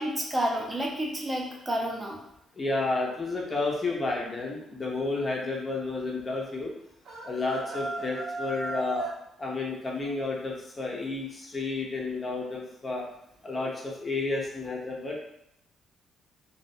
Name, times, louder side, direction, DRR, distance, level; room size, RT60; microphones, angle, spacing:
voice 1, 0.0-2.2, equal, 20° right, -2 dB, 0.5 m, -30 dB
voice 2, 2.6-6.7 7.2-9.1 9.4-13.0 13.4-15.2, left 3 dB, 30° left, -2 dB, 0.6 m, -31 dB
sound 1, 7.0-9.2, right 2 dB, 70° right, 0.5 m, -35 dB
2.3 x 2.1 x 2.6 m, 0.76 s
cardioid pair, 90°, 0 cm